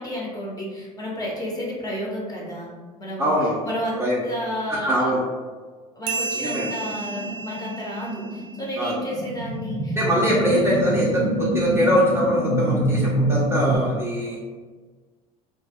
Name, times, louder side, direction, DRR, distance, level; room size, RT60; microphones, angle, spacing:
voice 1, 0.0-2.7 3.0-3.3 3.6-5.1 6.0-10.0, equal, 20° left, -4 dB, 0.9 m, -31 dB
voice 2, 3.2-3.6 4.0-4.2 4.7-5.2 6.3-6.7 8.8-9.0 10.0-14.4, equal, 15° right, -7 dB, 0.6 m, -22 dB
sound 1, 6.1-9.1, right 4 dB, 60° right, 0.4 m, -33 dB
sound 2, 6.7-13.8, right 1 dB, 90° left, 0.7 m, -26 dB
2.1 x 2.0 x 3.5 m, 1.4 s
hypercardioid pair, 70°, 20 cm